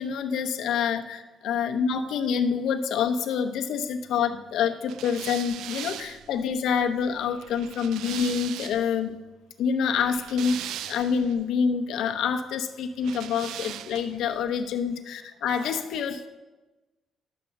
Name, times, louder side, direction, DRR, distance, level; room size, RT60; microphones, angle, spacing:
voice 1, 0.0-9.2 9.6-16.3, left 6 dB, 80° left, 7 dB, 0.9 m, -27 dB
sound 1, 4.9-9.0 9.9-11.3 13.0-14.2, right 11 dB, 85° right, 0.4 m, -39 dB
11.0 x 8.2 x 6.0 m, 1.2 s
cardioid pair, 90°, 0 cm